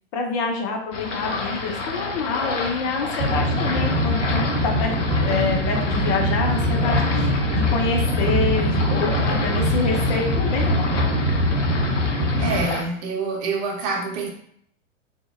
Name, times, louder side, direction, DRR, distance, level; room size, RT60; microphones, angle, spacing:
voice 1, 0.1-11.2, left 4 dB, 30° left, 2 dB, 0.4 m, -27 dB
sound 1, 0.9-12.8, left 3 dB, 75° left, 0.6 m, -30 dB
sound 2, 3.2-12.7, equal, 85° right, 0.6 m, -22 dB
voice 2, 12.4-14.3, right 4 dB, 40° right, 0 dB, 0.6 m, -26 dB
2.7 x 2.1 x 2.3 m, 0.66 s
figure-of-eight pair, 100°, 37 cm